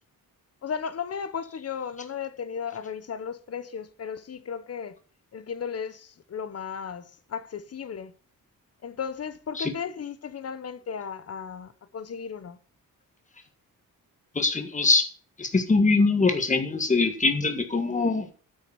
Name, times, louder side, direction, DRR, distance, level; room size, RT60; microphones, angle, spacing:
voice 1, 0.6-5.0 5.3-8.1 8.8-12.6, left 7 dB, 45° left, 0.9 m, -35 dB
voice 2, 14.4-15.0 15.4-18.3, left 3 dB, 20° left, 1.8 m, -23 dB
9.5 x 6.4 x 7.0 m
wide cardioid pair, 155°, 34 cm